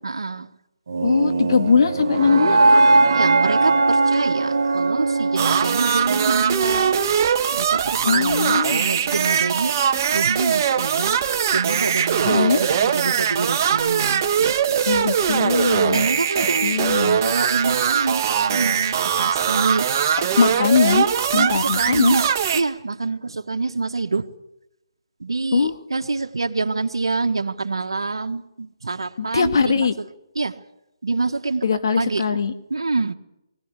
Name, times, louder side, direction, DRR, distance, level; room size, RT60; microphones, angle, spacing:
voice 1, 0.0-0.5 3.1-9.8 10.1-11.2 11.5-14.9 15.9-16.8 17.2-19.9 21.3-24.3 25.2-29.9 30.3-30.6 31.0-31.7 32.0-32.4 32.7-33.1, right 3 dB, 85° right, 1.4 m, -26 dB
sound 1, 0.9-7.0, right 3 dB, 70° right, 1.8 m, -20 dB
voice 2, 1.0-2.8 8.0-8.8 12.2-12.6 14.9-16.1 16.6-17.2 20.4-21.1 21.3-22.2 25.5-25.7 29.2-29.9 31.6-32.5, left 5 dB, 65° left, 2.0 m, -20 dB
sound 2, 5.4-22.6, right 8 dB, 35° right, 1.5 m, -21 dB
20.5 x 18.5 x 8.3 m
hypercardioid pair, 155°, 2 cm